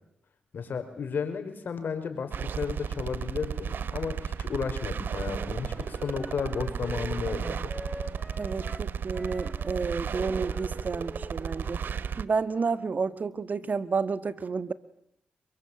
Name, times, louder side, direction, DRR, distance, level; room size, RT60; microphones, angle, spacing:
voice 1, 0.5-7.7, left 6 dB, 65° left, 8 dB, 5.3 m, -33 dB
sound 1, 2.3-12.3, right 7 dB, 65° right, 1.0 m, -34 dB
Wind instrument woodwind instrument, 5.5-12.9, left 1 dB, 5° left, 4.1 m, -45 dB
voice 2, 8.4-11.8 12.2-14.7, right 4 dB, 50° right, 14 dB, 1.7 m, -30 dB
29.5 x 22.0 x 9.0 m, 0.80 s
supercardioid pair, 45°, 4 cm